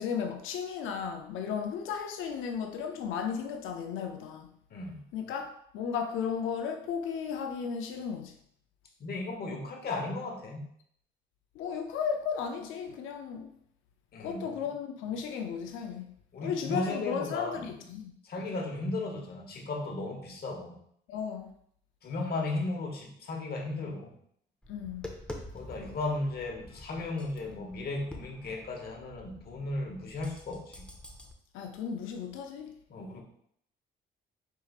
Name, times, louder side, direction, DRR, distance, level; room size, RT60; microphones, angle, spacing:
voice 1, 0.0-4.5 5.1-8.3 11.6-13.5 14.2-16.1 16.4-18.1 21.1-21.5 24.7-25.1 31.5-32.7, left 7 dB, 85° left, 0.4 m, -35 dB
voice 2, 4.7-5.0 9.0-10.7 14.1-14.6 16.3-17.7 18.2-20.8 22.0-24.1 25.5-30.8 32.9-33.2, left 2 dB, 50° left, 1.0 m, -35 dB
Tap, 24.6-31.3, left 1 dB, 5° left, 0.6 m, -47 dB
4.5 x 3.2 x 2.4 m
cardioid pair, 90°, 20 cm